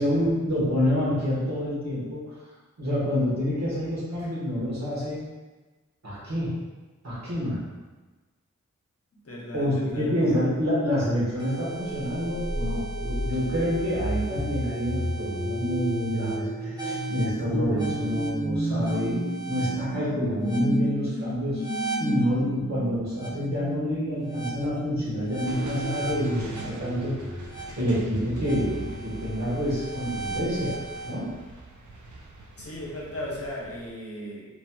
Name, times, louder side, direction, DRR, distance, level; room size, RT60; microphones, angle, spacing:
voice 1, 0.0-2.3 2.8-5.2 6.0-6.6 7.0-7.6 9.5-19.2 19.5-21.6 22.0-27.1 27.8-30.8 31.0-31.3, equal, 65° right, -8 dB, 1.3 m, -27 dB
voice 2, 9.2-10.2 32.6-34.5, left 1 dB, 50° left, -4 dB, 0.8 m, -36 dB
sound 1, 11.4-31.1, right 1 dB, 15° right, 0.7 m, -32 dB
sound 2, 25.4-33.9, right 2 dB, 85° right, 0.5 m, -44 dB
3.1 x 2.7 x 2.2 m, 1.2 s
cardioid pair, 45°, 29 cm